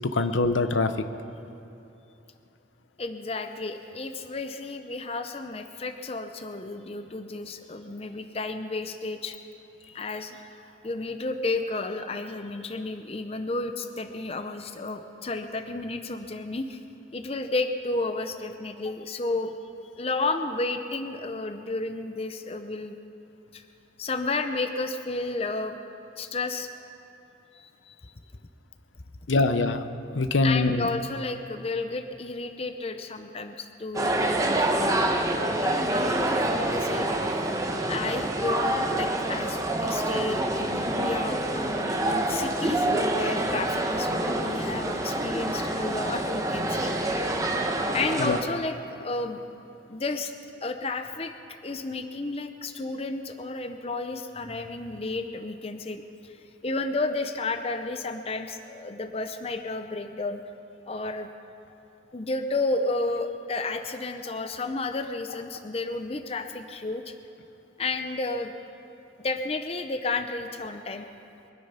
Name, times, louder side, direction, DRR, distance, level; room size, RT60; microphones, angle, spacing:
voice 1, 0.1-0.9 29.3-29.9 30.1-30.9 48.2-48.4, left 3 dB, 80° left, 9 dB, 0.7 m, -23 dB
voice 2, 3.0-9.4 9.8-16.8 17.1-19.6 20.0-23.0 23.5-23.6 24.0-25.8 26.2-26.7 27.5-28.1 30.4-34.9 35.4-37.1 37.9-46.9 47.9-49.4 49.9-50.3 50.6-56.4 56.6-60.4 60.9-61.3 62.1-67.1 67.8-68.5 69.2-71.1, left 3 dB, 30° left, 7 dB, 0.6 m, -32 dB
sound 1, 33.9-48.4, right 1 dB, 15° right, 0.9 m, -27 dB
23.5 x 10.0 x 5.7 m, 2.9 s
head